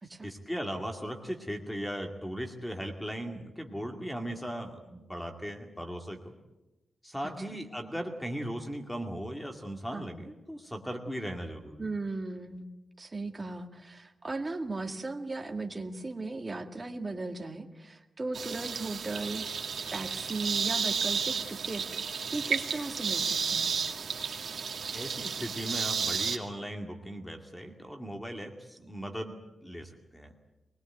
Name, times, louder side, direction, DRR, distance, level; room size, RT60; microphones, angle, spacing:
voice 1, 0.2-6.3 7.0-11.8 24.9-30.3, equal, 5° left, 3 dB, 2.3 m, -38 dB
voice 2, 7.2-7.6 9.9-10.1 11.8-12.7 13.0-23.8, right 3 dB, 25° right, 4 dB, 2.0 m, -37 dB
sound 1, 18.3-26.4, right 6 dB, 70° right, 2.4 m, -32 dB
23.0 x 20.5 x 9.2 m, 1.0 s
wide cardioid pair, 150°, 0 cm